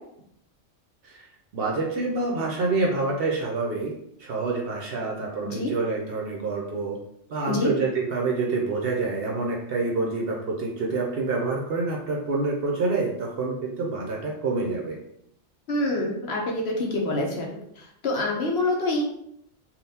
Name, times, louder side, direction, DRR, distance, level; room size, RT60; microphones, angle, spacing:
voice 1, 1.5-3.9 4.2-7.0 7.3-15.0, right 3 dB, 65° right, -1 dB, 0.7 m, -27 dB
voice 2, 15.7-19.0, left 2 dB, 60° left, -1 dB, 0.9 m, -26 dB
3.5 x 2.4 x 2.7 m, 0.75 s
omnidirectional pair, 1.3 m